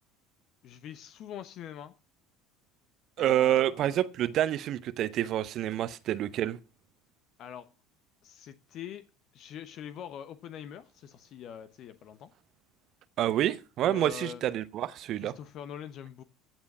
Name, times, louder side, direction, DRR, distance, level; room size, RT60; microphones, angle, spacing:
voice 1, 0.6-1.9 3.2-4.0 7.4-7.7 8.2-9.0 9.3-12.3 13.8-14.4 15.2-16.2, left 9 dB, 50° left, 1.0 m, -44 dB
voice 2, 3.2-6.6 13.2-15.3, right 12 dB, 50° right, 0.7 m, -28 dB
15.0 x 7.2 x 6.1 m
figure-of-eight pair, 70°, 0 cm